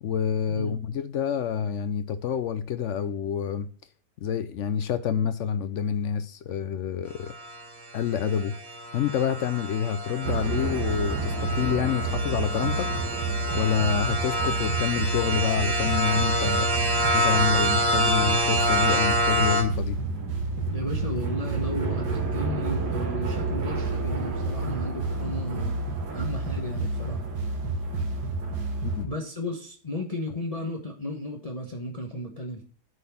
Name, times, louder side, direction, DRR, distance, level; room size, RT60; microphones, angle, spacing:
voice 1, 0.0-3.7 4.2-7.3 7.9-8.6 8.9-12.9 13.5-16.7 17.1-20.0 28.8-29.1, left 8 dB, 75° left, 0.7 m, -27 dB
sound 1, 7.3-19.6, right 1 dB, 55° right, 3.1 m, -27 dB
sound 2, 10.2-29.0, right 3 dB, 75° right, 2.0 m, -29 dB
voice 2, 20.7-25.7 26.1-27.2 29.0-32.6, left 1 dB, 25° left, 1.0 m, -34 dB
9.2 x 4.2 x 6.9 m
omnidirectional pair, 1.8 m